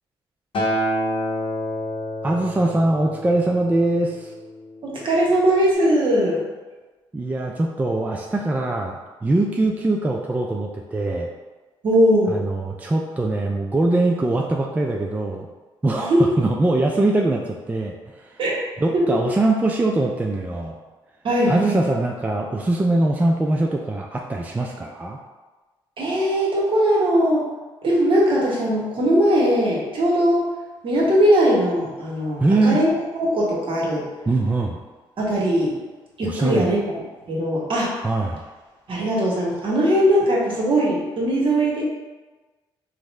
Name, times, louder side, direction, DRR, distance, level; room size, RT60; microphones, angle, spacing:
Acoustic guitar, 0.5-4.8 5.7-5.8, equal, 60° left, 0.8 m, -28 dB
voice 1, 2.2-4.3 7.1-11.3 12.3-15.5 15.8-17.9 18.3-18.4 18.8-20.8 21.5-25.2 32.4-32.8 34.3-34.8 36.2-36.7 38.0-38.4, right 2 dB, 15° right, 0 dB, 0.3 m, -22 dB
voice 2, 4.8-6.4 11.8-12.4 15.9-16.2 18.4-18.6 18.9-19.2 21.2-21.9 26.0-27.4 27.8-30.4 30.8-32.9 33.2-34.0 35.2-35.8 36.2-36.8 37.3-37.9 38.9-41.8, equal, 60° right, -4 dB, 1.0 m, -20 dB
3.5 x 2.0 x 3.1 m, 1.3 s
cardioid pair, 70°, 10 cm